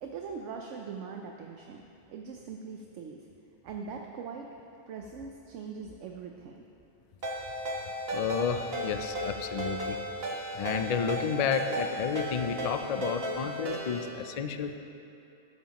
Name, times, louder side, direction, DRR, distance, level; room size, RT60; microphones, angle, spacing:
voice 1, 0.0-1.8 2.1-3.2 3.6-4.5 4.9-6.6, right 5 dB, 70° right, 2 dB, 1.0 m, -41 dB
Ringtone, 7.2-14.1, equal, 50° right, 1.7 m, -35 dB
voice 2, 8.1-10.0 10.5-14.8, left 6 dB, 80° left, 8 dB, 0.3 m, -31 dB
13.0 x 12.0 x 3.0 m, 2.8 s
omnidirectional pair, 1.3 m